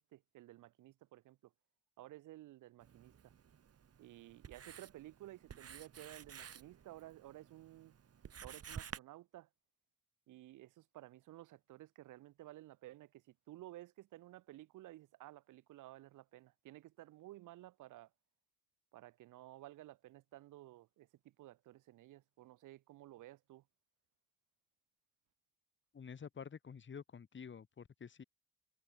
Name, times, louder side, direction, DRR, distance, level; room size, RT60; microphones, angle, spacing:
voice 1, 0.0-1.5 2.0-3.3 4.0-7.9 8.4-9.5 10.3-18.1 18.9-23.6, right 15 dB, 85° right, 2.5 m, -55 dB
Writing, 2.8-9.0, right 8 dB, 50° right, 5.7 m, -53 dB
voice 2, 25.9-28.2, left 6 dB, 40° left, 2.4 m, -50 dB
cardioid pair, 90°, 30 cm